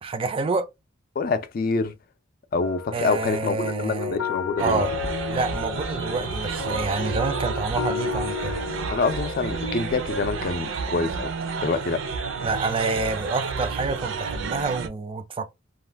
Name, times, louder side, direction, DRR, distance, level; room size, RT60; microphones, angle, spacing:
voice 1, 0.0-0.7 2.9-4.2 4.6-5.0 5.3-8.6 12.4-15.5, right 3 dB, 25° right, 0.4 m, -28 dB
voice 2, 1.2-1.9 2.5-4.9 8.9-11.3 11.6-12.0, left 4 dB, 45° left, 0.4 m, -26 dB
sound 1, 2.6-9.8, left 7 dB, 90° left, 0.6 m, -33 dB
sound 2, 4.6-14.9, right 4 dB, 75° right, 0.5 m, -31 dB
2.4 x 2.2 x 3.2 m
head